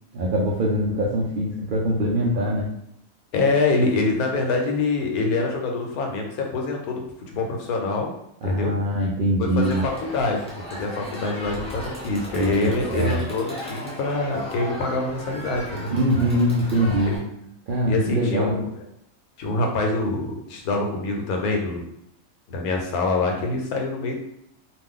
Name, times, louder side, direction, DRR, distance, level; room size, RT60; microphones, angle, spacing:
voice 1, 0.1-2.7 8.4-9.9 12.4-13.2 15.9-17.2 17.7-18.6, equal, 75° right, -4 dB, 0.4 m, -23 dB
voice 2, 3.3-8.1 8.4-8.7 9.4-15.9 17.0-17.2 17.8-18.7 19.4-21.8 22.5-24.2, left 3 dB, 90° left, 2 dB, 1.1 m, -25 dB
Crowd, 9.6-17.2, equal, 10° left, 0.3 m, -36 dB
2.5 x 2.2 x 3.6 m, 0.74 s
omnidirectional pair, 1.5 m